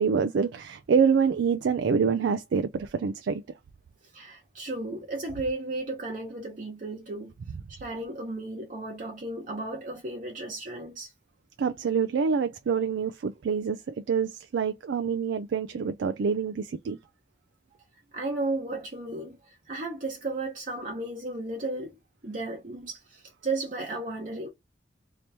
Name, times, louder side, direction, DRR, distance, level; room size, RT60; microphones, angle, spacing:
voice 1, 0.0-3.4 11.6-17.0, right 6 dB, 80° right, 0.3 m, -26 dB
voice 2, 4.1-7.3 7.7-11.1 18.1-24.5, right 2 dB, 45° right, 0.8 m, -34 dB
2.9 x 2.8 x 3.3 m
head